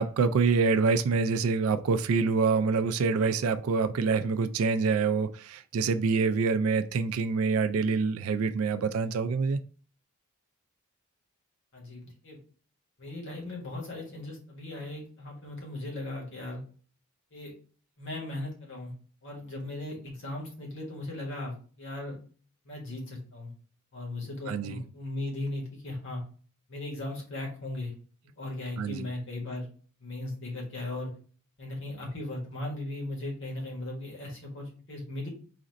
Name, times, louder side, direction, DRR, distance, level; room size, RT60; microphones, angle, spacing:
voice 1, 0.0-9.6 24.5-24.8 28.8-29.1, right 4 dB, 85° right, 11 dB, 0.4 m, -26 dB
voice 2, 11.7-12.4 13.0-16.6 17.3-17.5 18.0-18.9 19.2-22.2 22.6-23.5 23.9-26.2 26.7-27.9 28.4-29.7 30.0-31.1 31.6-35.3, left 2 dB, 60° left, -1 dB, 1.7 m, -37 dB
4.2 x 2.5 x 3.9 m, 0.41 s
head